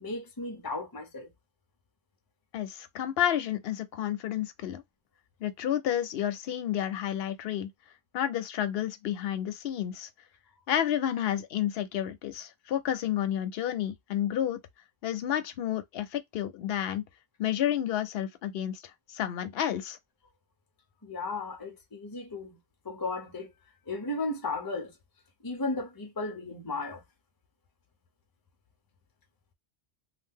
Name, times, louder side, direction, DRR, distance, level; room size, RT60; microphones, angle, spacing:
voice 1, 0.0-1.3 21.0-22.6 22.8-23.5 23.9-24.9 25.4-27.0, left 2 dB, 30° left, 0.4 m, -35 dB
voice 2, 2.5-4.8 5.4-7.7 8.1-10.1 10.7-14.6 15.0-17.0 17.4-18.8 19.1-20.0, left 11 dB, 65° left, 0.7 m, -30 dB
2.7 x 2.2 x 3.5 m
omnidirectional pair, 1.2 m